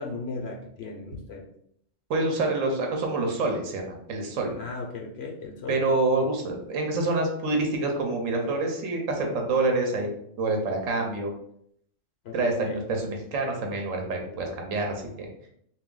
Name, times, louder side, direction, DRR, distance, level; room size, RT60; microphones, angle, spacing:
voice 1, 0.0-1.4 4.6-5.8 12.2-12.8, left 3 dB, 60° left, 0 dB, 0.8 m, -36 dB
voice 2, 2.1-4.6 5.7-10.1 10.4-11.3 12.3-15.3, right 2 dB, 80° right, 2 dB, 1.1 m, -27 dB
3.4 x 2.6 x 3.7 m, 0.69 s
omnidirectional pair, 1.3 m